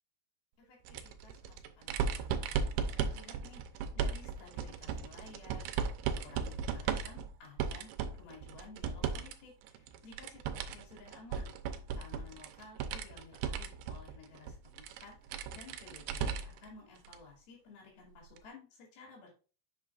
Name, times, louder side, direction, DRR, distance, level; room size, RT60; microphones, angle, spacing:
voice 1, 0.6-11.5 12.0-19.3, left 4 dB, 75° left, -1 dB, 4.2 m, -55 dB
sound 1, 0.8-9.3 9.6-16.6 17.0-17.2 18.4-18.5, right 6 dB, 80° right, 2.6 m, -36 dB
7.8 x 6.7 x 2.4 m, 0.36 s
omnidirectional pair, 4.5 m